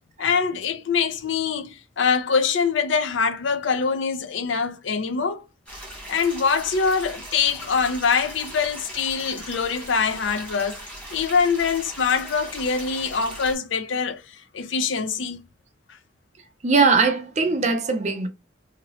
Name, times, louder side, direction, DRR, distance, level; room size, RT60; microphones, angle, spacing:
voice 1, 0.2-5.4 6.1-10.9 11.1-14.2 14.5-15.4, left 5 dB, 80° left, 0.5 m, -24 dB
sound 1, 5.7-13.5, right 1 dB, 5° left, 1.2 m, -39 dB
voice 2, 16.6-18.3, right 4 dB, 35° right, 0.5 m, -20 dB
2.9 x 2.8 x 2.8 m
head